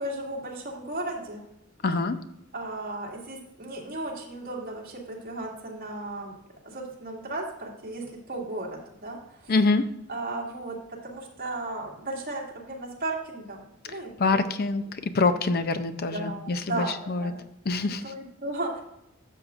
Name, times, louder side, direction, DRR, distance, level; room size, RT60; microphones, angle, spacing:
voice 1, 0.0-1.4 2.5-6.4 6.6-9.5 10.1-14.4 14.8-14.9 16.0-17.4 18.0-18.8, right 2 dB, 45° right, -2 dB, 2.2 m, -35 dB
voice 2, 1.8-2.2 9.5-9.9 14.2-16.6 17.1-17.2 17.7-18.0, left 3 dB, 50° left, 11 dB, 0.5 m, -25 dB
13.0 x 7.5 x 2.5 m, 0.84 s
head